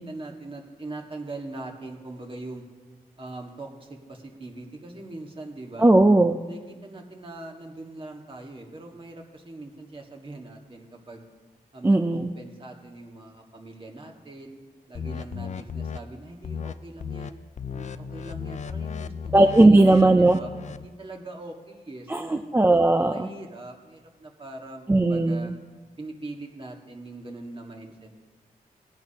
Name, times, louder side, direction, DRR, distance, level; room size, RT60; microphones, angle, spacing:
voice 1, 0.0-2.6 3.2-5.9 6.5-11.2 11.7-14.6 14.9-17.4 17.7-20.5 20.8-22.5 23.1-25.5 26.0-28.1, right 2 dB, 35° right, 1 dB, 1.8 m, -41 dB
voice 2, 5.8-6.4 11.8-12.3 19.3-20.4 22.1-23.3 24.9-25.5, right 2 dB, 15° right, 6 dB, 0.5 m, -18 dB
sound 1, 14.9-16.0 16.4-16.7 17.0-17.3 17.6-20.9, left 7 dB, 50° left, 0.4 m, -35 dB
18.5 x 10.5 x 2.9 m, 1.3 s
wide cardioid pair, 95°, 16 cm